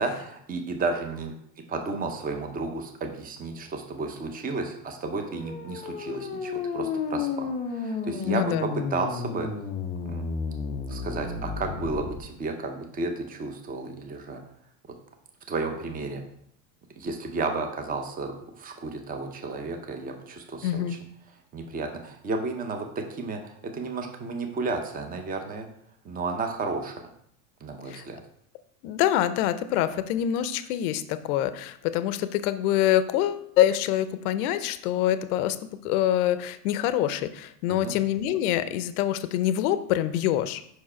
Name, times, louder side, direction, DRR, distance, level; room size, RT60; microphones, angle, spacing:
voice 1, 0.0-1.3 1.7-9.5 10.1-10.2 10.9-14.4 15.5-16.2 17.0-21.0 21.5-25.7 26.0-27.0 27.6-28.2 37.7-37.9, right 3 dB, 20° right, 5 dB, 0.7 m, -32 dB
sound 1, 5.1-12.2, left 5 dB, 20° left, 0.4 m, -32 dB
voice 2, 8.3-8.7 20.6-21.0 27.9-28.0 28.8-35.6 35.8-40.6, left 12 dB, 70° left, 12 dB, 0.6 m, -25 dB
5.5 x 4.7 x 4.3 m, 0.69 s
supercardioid pair, 125°, 47 cm